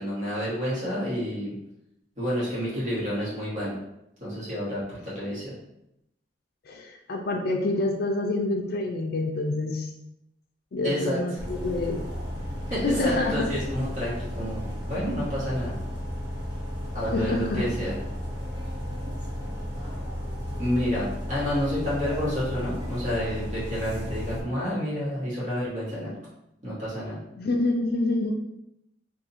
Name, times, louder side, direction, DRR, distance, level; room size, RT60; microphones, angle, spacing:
voice 1, 0.0-1.5 2.2-3.8 4.2-5.5 10.8-11.4 12.7-15.8 16.9-18.0 20.6-26.1 26.6-27.2, equal, 45° right, -9 dB, 1.3 m, -29 dB
voice 2, 6.7-9.9 10.7-12.0 12.4-12.5 12.8-13.5 17.1-17.7 27.4-28.3, left 2 dB, 55° left, 2 dB, 0.4 m, -27 dB
sound 1, 11.4-24.4, equal, 25° right, 1.0 m, -34 dB
2.7 x 2.6 x 4.0 m, 0.84 s
head